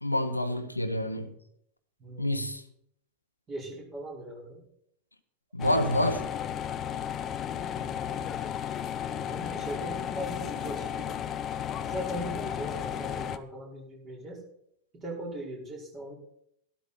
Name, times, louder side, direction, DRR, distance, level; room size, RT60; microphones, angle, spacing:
voice 1, 0.0-1.3 2.2-2.6 5.5-6.3, left 1 dB, 85° left, 1.0 m, -28 dB
voice 2, 2.0-2.4 3.5-4.6 7.5-8.5 9.1-11.3 11.8-14.4 14.9-16.1, right 1 dB, 25° right, 5.3 m, -40 dB
sound 1, 5.6-13.4, left 9 dB, 30° left, 0.7 m, -34 dB
13.0 x 12.5 x 4.3 m
figure-of-eight pair, 90°, 0 cm